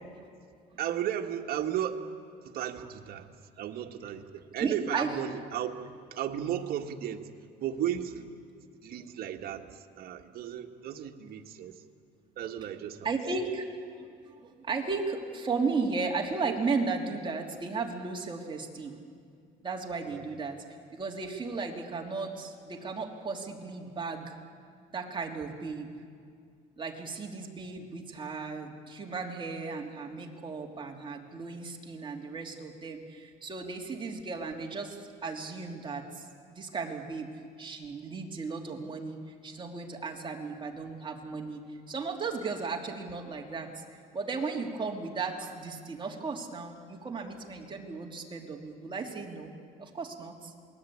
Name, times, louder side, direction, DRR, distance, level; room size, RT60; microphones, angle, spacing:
voice 1, 0.8-2.0 2.5-3.3 3.6-7.3 7.6-8.3 8.8-9.7 10.0-11.7 12.4-13.1 20.1-20.2, right 10 dB, 65° right, 4 dB, 1.8 m, -34 dB
voice 2, 4.6-5.2 13.0-19.0 19.6-20.6 20.9-24.3 24.9-25.9 26.8-35.0 35.2-37.3 37.6-39.2 39.4-41.6 41.9-43.8 44.1-49.5 49.8-50.5, right 4 dB, 30° right, 1 dB, 3.1 m, -35 dB
27.5 x 21.0 x 8.7 m, 2.2 s
cardioid pair, 110°, 17 cm